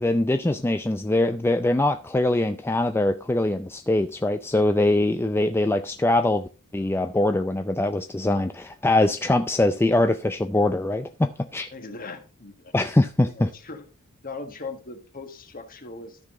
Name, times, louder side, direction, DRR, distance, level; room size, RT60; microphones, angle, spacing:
voice 1, 0.0-11.7 12.7-13.5, left 2 dB, 10° left, 0.4 m, -23 dB
voice 2, 11.7-12.7 13.3-13.8 14.2-16.2, left 3 dB, 40° left, 1.5 m, -39 dB
13.5 x 6.0 x 3.7 m
head